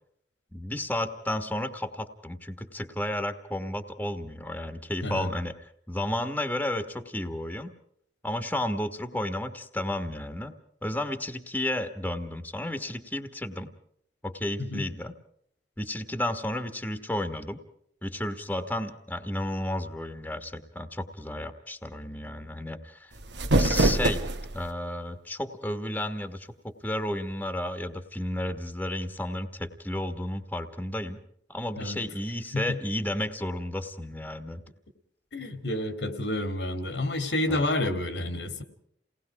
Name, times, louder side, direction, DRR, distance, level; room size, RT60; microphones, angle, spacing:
voice 1, 0.5-7.7 8.2-10.5 10.8-13.7 14.2-15.1 15.8-17.6 18.0-23.1 23.6-24.2 24.5-31.2 31.5-34.6 37.5-37.7, left 1 dB, 10° left, 7 dB, 1.3 m, -32 dB
sound 1, 23.1-24.7, right 2 dB, 80° right, 1.4 m, -24 dB
voice 2, 35.3-38.6, left 1 dB, 80° left, 8 dB, 2.4 m, -29 dB
29.0 x 19.0 x 4.8 m, 0.67 s
head